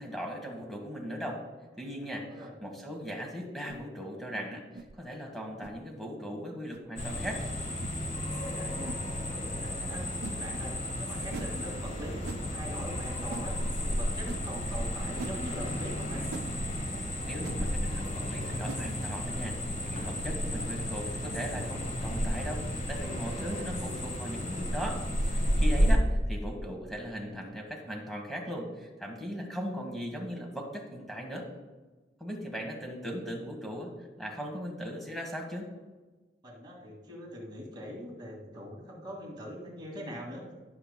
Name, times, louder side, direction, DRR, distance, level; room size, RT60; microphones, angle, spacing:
voice 1, 0.0-1.4 1.8-7.4 17.3-31.5 32.2-33.9 34.2-35.7, equal, ahead, 1 dB, 1.3 m, -38 dB
sound 1, 3.7-3.8 4.7-4.9 5.6-5.8 6.7-6.8 7.8-8.0 8.8-9.0 10.2-10.4 11.3-11.5 12.2-12.4 13.3-13.5 14.3-14.4 15.2-15.4 16.3-16.5 17.4-17.6 18.6-18.9, right 4 dB, 60° right, 0.4 m, -42 dB
sound 2, 7.0-26.0, equal, 40° left, 1.6 m, -32 dB
voice 2, 8.2-10.0 10.3-10.7 11.0-13.5 13.8-16.3 36.4-40.4, equal, 25° right, -3 dB, 2.1 m, -42 dB
16.5 x 6.8 x 2.2 m, 1.3 s
head